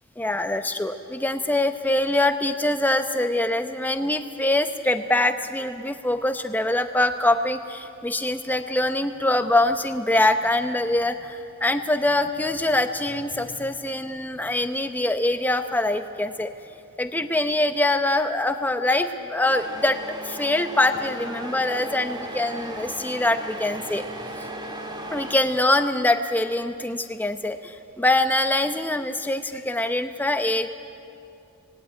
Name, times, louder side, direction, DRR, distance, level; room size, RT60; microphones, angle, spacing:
voice 1, 0.2-16.5 17.0-20.0 20.2-24.0 25.1-30.7, left 1 dB, 10° left, 8 dB, 0.8 m, -24 dB
Truck, 19.5-25.4, right 1 dB, 20° right, 1.8 m, -36 dB
18.5 x 18.5 x 9.4 m, 2.6 s
head